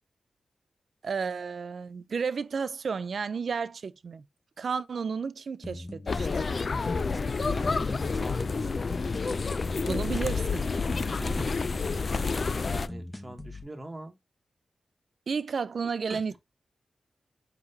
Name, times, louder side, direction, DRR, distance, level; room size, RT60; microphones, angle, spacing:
voice 1, 1.0-4.2 4.6-6.4 9.9-10.7 15.3-16.4, right 5 dB, 70° right, 0.4 m, -32 dB
sound 1, 5.6-13.6, left 1 dB, 15° left, 0.8 m, -42 dB
sound 2, 6.1-12.9, left 4 dB, 55° left, 0.3 m, -29 dB
voice 2, 7.4-8.8 11.2-11.6 12.5-14.2 15.8-16.4, right 1 dB, 30° right, 1.0 m, -43 dB
4.5 x 3.7 x 2.7 m
cardioid pair, 55°, 0 cm